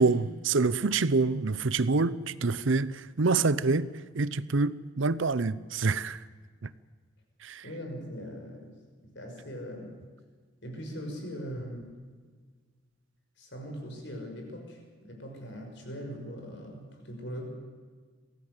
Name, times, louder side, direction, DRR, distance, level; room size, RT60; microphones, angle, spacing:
voice 1, 0.0-3.9 4.1-6.2 6.6-6.7 7.4-7.6, right 3 dB, 70° right, 0.7 m, -26 dB
voice 2, 7.6-8.7 9.1-9.9 10.6-11.9 13.4-17.5, equal, 60° left, 5.9 m, -40 dB
23.5 x 17.0 x 8.0 m
head